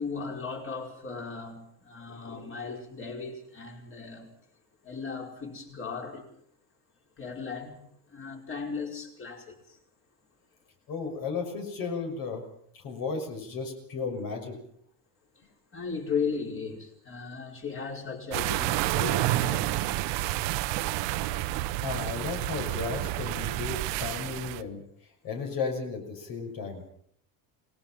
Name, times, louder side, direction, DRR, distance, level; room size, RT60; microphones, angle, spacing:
voice 1, 0.0-4.3 4.8-6.3 7.2-9.8 15.7-20.3, left 5 dB, 25° left, 5.2 m, -36 dB
voice 2, 10.9-12.4 12.7-14.6 21.8-24.8 25.2-26.8, left 4 dB, 45° left, 6.3 m, -34 dB
sound 1, 18.3-24.6, right 16 dB, 55° right, 1.3 m, -29 dB
29.0 x 20.0 x 5.8 m
cardioid pair, 155°, 49 cm